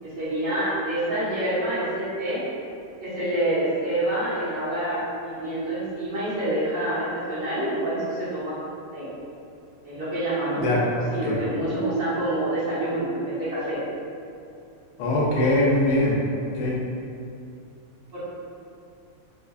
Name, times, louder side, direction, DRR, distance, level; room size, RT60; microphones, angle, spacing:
voice 1, 0.0-2.4 3.0-9.1 9.8-13.8 18.1-18.3, right 1 dB, 60° right, -17 dB, 1.9 m, -27 dB
voice 2, 10.6-11.0 15.0-16.1 16.6-16.8, left 1 dB, 85° left, -5 dB, 1.5 m, -21 dB
4.5 x 2.4 x 2.3 m, 2.5 s
omnidirectional pair, 2.4 m